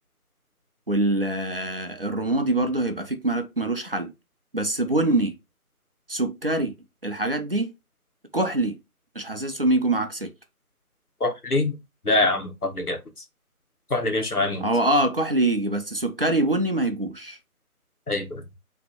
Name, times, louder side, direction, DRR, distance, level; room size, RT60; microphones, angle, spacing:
voice 1, 0.9-4.1 4.5-5.3 6.1-6.7 7.0-7.7 8.3-8.8 9.1-10.3 14.6-17.4, right 2 dB, 40° right, 0.7 m, -24 dB
voice 2, 11.2-11.7 12.0-13.0 13.9-14.7 18.1-18.4, left 2 dB, 85° left, 1.4 m, -24 dB
5.8 x 3.0 x 2.9 m
figure-of-eight pair, 160°, 44 cm